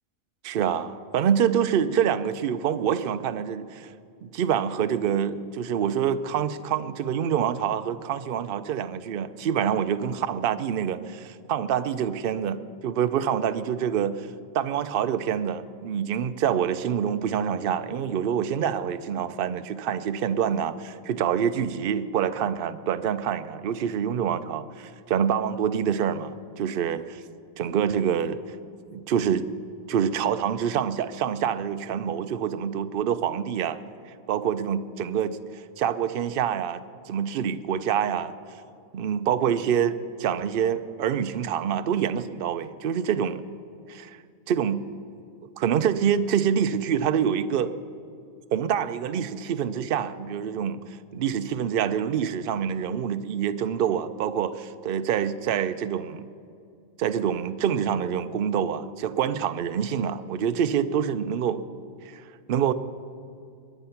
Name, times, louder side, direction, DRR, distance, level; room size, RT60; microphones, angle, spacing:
voice 1, 0.4-3.9 4.2-14.3 14.5-27.2 27.6-28.4 28.9-29.4 29.9-33.8 34.3-36.8 37.1-38.4 38.9-43.4 43.9-44.2 44.5-44.8 45.6-47.7 48.5-50.8 51.1-56.3 57.0-61.6 62.0-62.2 62.5-62.7, right 8 dB, 55° right, 11 dB, 0.6 m, -26 dB
22.0 x 10.0 x 5.8 m, 2.4 s
omnidirectional pair, 1.5 m